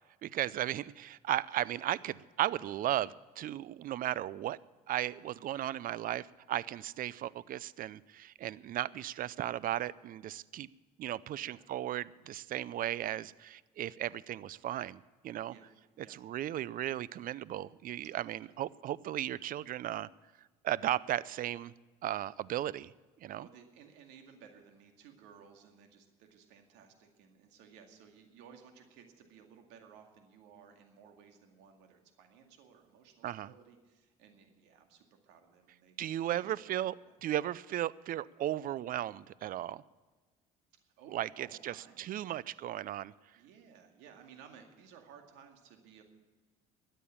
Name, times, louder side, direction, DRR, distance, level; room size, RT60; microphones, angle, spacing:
voice 1, 0.2-4.6 4.9-10.7 11.0-15.5 16.1-20.1 20.6-21.7 22.0-22.9 23.2-23.5 33.2-33.5 36.0-36.9 37.2-39.8 41.1-43.1, right 12 dB, 50° right, 21 dB, 0.5 m, -36 dB
voice 2, 23.3-37.1 40.8-42.4 42.9-43.0 43.3-46.0, right 7 dB, 75° right, 4 dB, 2.2 m, -58 dB
13.0 x 9.1 x 8.4 m, 1.3 s
supercardioid pair, 75°, 18 cm